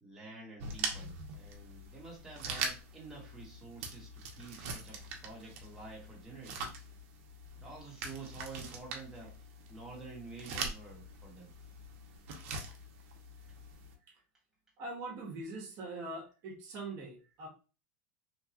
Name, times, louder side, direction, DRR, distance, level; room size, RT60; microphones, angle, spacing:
voice 1, 0.0-6.8 7.5-9.4 9.7-11.5, right 3 dB, 5° right, -4 dB, 1.0 m, -49 dB
sound 1, 0.6-13.9, right 4 dB, 65° right, 0.7 m, -43 dB
voice 2, 14.8-17.5, right 2 dB, 45° right, -1 dB, 0.9 m, -42 dB
3.0 x 2.2 x 2.7 m, 0.33 s
supercardioid pair, 140°, 8 cm